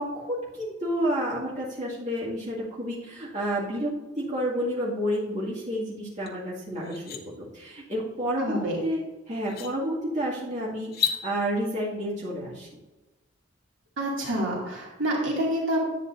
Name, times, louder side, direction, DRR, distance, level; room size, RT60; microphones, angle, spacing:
voice 1, 0.0-12.7, equal, 35° right, -8 dB, 2.2 m, -30 dB
sound 1, 6.3-6.4 6.8-7.2 8.8-8.9 9.4-9.7 10.8-11.2, left 7 dB, 50° left, 0.9 m, -30 dB
voice 2, 8.4-8.8 14.0-15.9, right 1 dB, 65° right, -3 dB, 2.4 m, -27 dB
11.0 x 8.5 x 2.6 m, 1.1 s
head